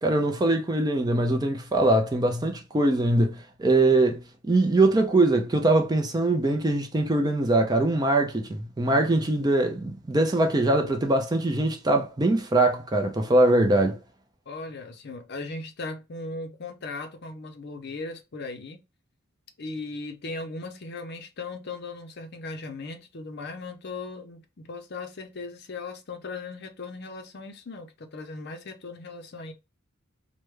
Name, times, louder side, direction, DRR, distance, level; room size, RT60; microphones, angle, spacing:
voice 1, 0.0-14.0, right 2 dB, 20° right, 0.4 m, -22 dB
voice 2, 14.5-18.8 19.6-29.5, left 3 dB, 50° left, 0.5 m, -38 dB
3.3 x 2.1 x 3.1 m
head